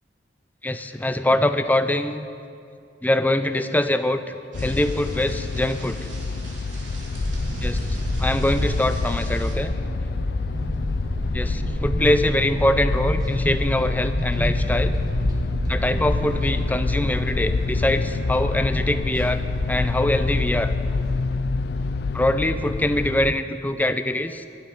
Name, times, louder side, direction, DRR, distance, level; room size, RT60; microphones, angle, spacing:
voice 1, 0.6-2.3 3.0-6.0 7.6-7.8 8.2-9.7 11.3-15.0 15.7-19.4 19.7-20.7 22.1-24.5, left 1 dB, 10° left, 10 dB, 0.5 m, -23 dB
sound 1, 4.5-23.3, left 3 dB, 60° left, 0.4 m, -27 dB
sound 2, 4.5-9.5, right 2 dB, 90° right, 3.2 m, -44 dB
sound 3, 7.1-21.1, equal, 20° right, 1.2 m, -30 dB
12.5 x 7.5 x 9.5 m, 2.6 s
head